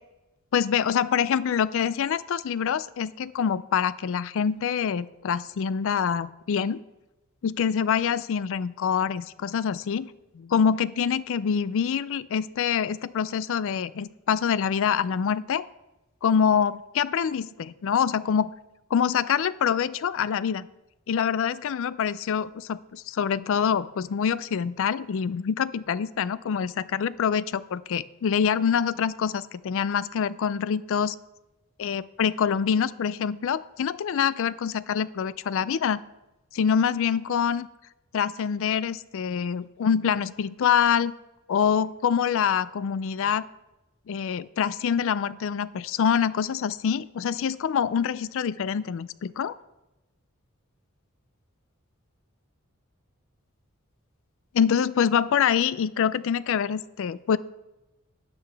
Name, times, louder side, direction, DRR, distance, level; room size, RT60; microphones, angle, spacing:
voice 1, 0.5-6.8 7.4-10.1 10.3-15.6 16.2-18.5 18.9-20.7 21.1-31.2 31.8-36.0 36.5-37.7 38.1-41.1 41.5-43.5 44.1-49.6 54.5-57.4, left 7 dB, 65° left, 18 dB, 0.4 m, -25 dB
12.5 x 8.8 x 3.4 m, 0.99 s
head